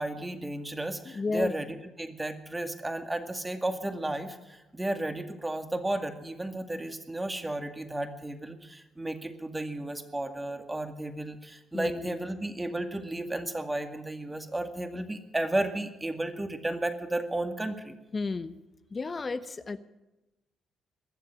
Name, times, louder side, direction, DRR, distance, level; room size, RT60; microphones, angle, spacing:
voice 1, 0.0-17.9, right 1 dB, 15° right, 6 dB, 2.1 m, -33 dB
voice 2, 1.0-1.5 11.7-12.2 18.1-18.6 18.9-19.8, left 4 dB, 35° left, 12 dB, 0.9 m, -32 dB
22.0 x 7.4 x 8.8 m, 1.0 s
hypercardioid pair, 50°, 0 cm